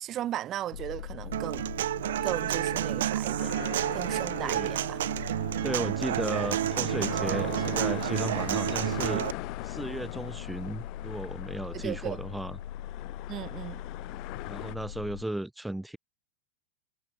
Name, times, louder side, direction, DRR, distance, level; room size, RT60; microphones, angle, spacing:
voice 1, 0.0-1.7 2.2-3.5 3.9-5.0 11.7-12.2 13.3-13.8, right 12 dB, 30° right, 1.3 m, -36 dB
sound 1, 0.7-15.2, left 11 dB, 60° left, 0.8 m, -41 dB
Human voice / Acoustic guitar, 1.3-9.3, right 13 dB, 60° right, 0.7 m, -30 dB
sound 2, 3.4-14.8, left 24 dB, 40° left, 1.9 m, -42 dB
voice 2, 4.4-4.7 5.6-9.3 9.6-12.6 14.4-16.0, right 1 dB, 5° right, 1.0 m, -35 dB
figure-of-eight pair, 90°, 0 cm